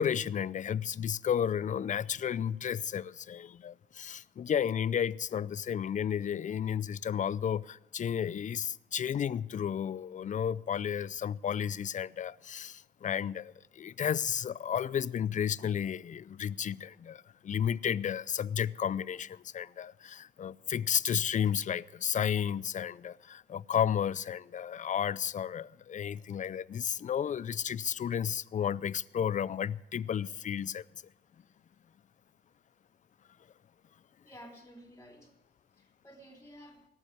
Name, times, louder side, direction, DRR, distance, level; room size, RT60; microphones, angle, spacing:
voice 1, 0.0-30.8, left 8 dB, 40° left, 0.5 m, -32 dB
voice 2, 34.2-35.3 35.7-36.9, equal, 15° left, 3.7 m, -52 dB
18.5 x 7.3 x 9.6 m
cardioid pair, 90°, 20 cm